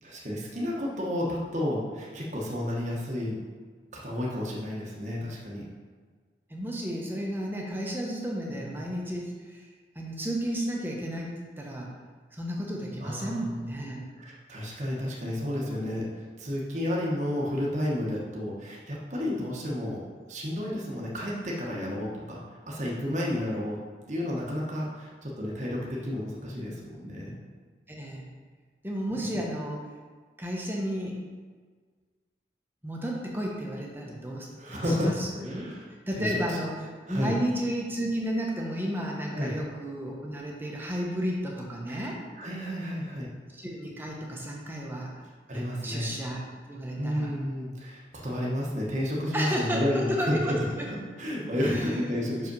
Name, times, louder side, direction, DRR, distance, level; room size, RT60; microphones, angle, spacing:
voice 1, 0.0-3.4 4.0-5.7 8.5-8.8 13.0-13.4 14.2-20.0 20.3-22.4 22.7-23.8 24.1-27.3 29.3-29.4 34.6-35.2 35.5-35.9 36.1-36.6 37.1-37.3 39.3-39.6 41.9-42.1 42.4-43.3 45.5-46.1 47.0-52.5, left 1 dB, 40° right, -4 dB, 1.2 m, -31 dB
voice 2, 6.5-9.7 9.9-11.9 12.3-14.0 27.9-28.3 28.8-29.9 30.4-31.2 32.8-35.7 36.1-42.2 43.5-45.1 45.5-46.4 46.7-47.3 49.3-50.9 51.6-52.1, equal, 10° right, -2 dB, 1.1 m, -33 dB
6.0 x 5.3 x 5.4 m, 1.5 s
head